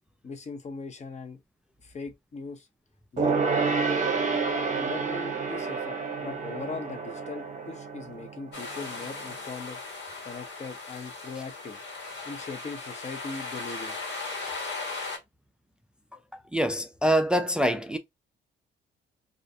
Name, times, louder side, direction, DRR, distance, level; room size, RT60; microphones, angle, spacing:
voice 1, 0.2-1.4 1.8-2.7 3.1-3.4 4.7-9.8 10.2-11.8 12.2-14.0, left 4 dB, 35° left, 0.6 m, -39 dB
Gong, 3.2-9.1 9.3-9.4, right 4 dB, 40° right, 0.8 m, -29 dB
sound 1, 8.5-15.2, left 3 dB, 65° left, 1.4 m, -37 dB
voice 2, 16.5-18.0, right 1 dB, 5° right, 0.3 m, -24 dB
2.4 x 2.0 x 2.6 m
cardioid pair, 90°, 20 cm